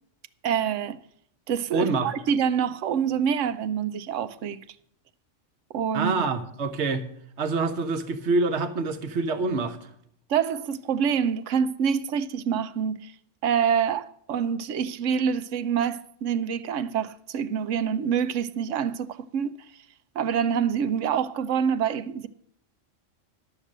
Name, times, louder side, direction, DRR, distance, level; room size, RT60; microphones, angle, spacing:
voice 1, 0.4-1.0 1.5-4.6 5.7-6.1 10.3-13.1 13.4-19.6 20.1-22.3, right 7 dB, 80° right, 1.0 m, -26 dB
voice 2, 1.7-2.1 5.9-7.1 7.4-9.9, right 3 dB, 65° right, 1.2 m, -26 dB
11.5 x 6.6 x 7.4 m
omnidirectional pair, 1.3 m